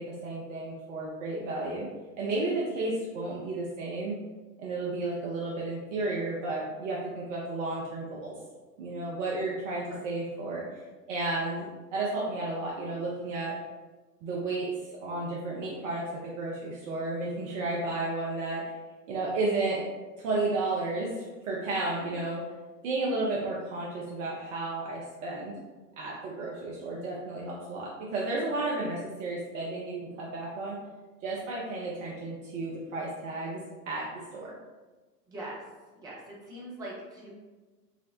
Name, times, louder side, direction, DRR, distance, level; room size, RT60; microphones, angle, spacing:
voice 1, 0.0-1.9 2.2-4.2 4.6-8.3 8.8-10.8 11.1-13.5 14.2-14.7 15.0-16.0 16.4-18.6 19.1-19.8 20.2-22.4 22.8-25.5 26.0-30.8 31.2-33.6 33.9-34.0 34.3-34.5, right 2 dB, 50° right, -4 dB, 0.6 m, -32 dB
voice 2, 35.3-35.6 36.0-37.3, right 1 dB, 10° right, -5 dB, 0.3 m, -41 dB
4.0 x 2.0 x 2.5 m, 1.3 s
figure-of-eight pair, 85°, 48 cm